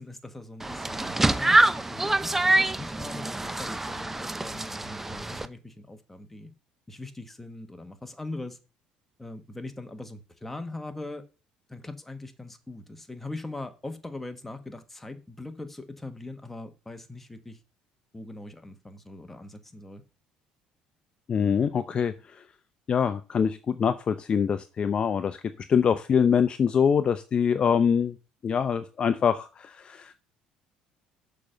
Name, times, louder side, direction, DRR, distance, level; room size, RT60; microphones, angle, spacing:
voice 1, 0.0-6.5 6.9-8.6 9.2-11.2 11.7-17.6 18.1-20.0, left 2 dB, 10° left, 1.3 m, -41 dB
sound 1, 0.6-5.5, right 2 dB, 10° right, 0.5 m, -25 dB
voice 2, 21.3-22.1 22.9-25.4 25.7-28.2 28.4-30.1, left 7 dB, 35° left, 0.6 m, -24 dB
6.8 x 5.2 x 6.6 m
cardioid pair, 110°, 3 cm